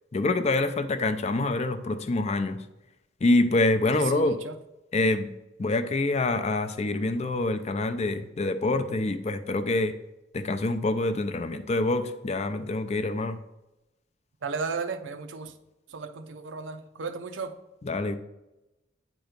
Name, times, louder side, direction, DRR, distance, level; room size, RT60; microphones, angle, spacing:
voice 1, 0.1-2.6 3.2-4.3 4.9-5.3 5.6-9.9 10.3-13.4 17.8-18.2, left 2 dB, 35° left, 8 dB, 0.5 m, -26 dB
voice 2, 3.9-4.6 14.4-15.5 15.9-17.6, right 4 dB, 75° right, 8 dB, 0.6 m, -34 dB
8.9 x 3.0 x 5.1 m, 0.96 s
head